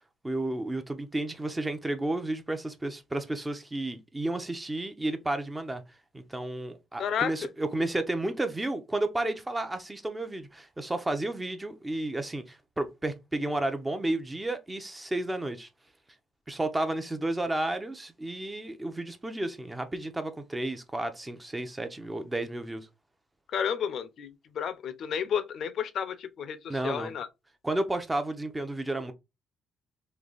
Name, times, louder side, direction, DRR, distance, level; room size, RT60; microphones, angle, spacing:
voice 1, 0.2-5.8 6.1-15.7 16.5-22.9 26.7-27.1 27.6-29.1, right 2 dB, 15° right, 0.8 m, -32 dB
voice 2, 7.0-7.3 23.5-27.3, left 8 dB, 65° left, 0.7 m, -31 dB
3.4 x 2.8 x 4.0 m
cardioid pair, 100°, 0 cm